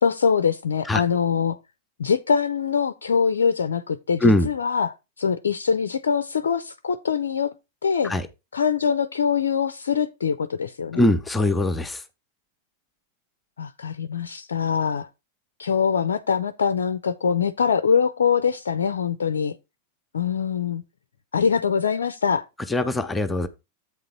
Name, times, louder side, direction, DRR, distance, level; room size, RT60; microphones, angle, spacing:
voice 1, 0.0-1.6 2.0-7.5 7.8-8.1 8.5-11.0 13.6-15.1 15.6-19.6 20.1-20.8 21.3-22.4, left 6 dB, 65° left, 0.5 m, -23 dB
voice 2, 10.9-12.0 22.7-23.5, left 1 dB, 10° left, 0.8 m, -21 dB
8.5 x 3.8 x 5.2 m
figure-of-eight pair, 90°, 0 cm